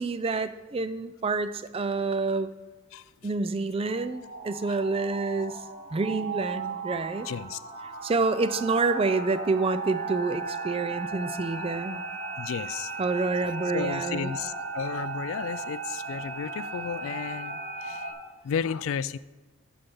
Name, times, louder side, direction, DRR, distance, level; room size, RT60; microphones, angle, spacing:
voice 1, 0.0-2.5 3.2-5.6 5.9-7.3 8.0-12.0 13.0-14.3, right 3 dB, 25° right, 13 dB, 0.4 m, -28 dB
sound 1, 3.8-18.1, right 4 dB, 40° right, 1.5 m, -36 dB
voice 2, 7.3-7.6 12.4-12.9 13.7-18.1 18.4-19.2, left 7 dB, 65° left, 17 dB, 0.3 m, -33 dB
10.5 x 7.0 x 5.4 m, 1.2 s
head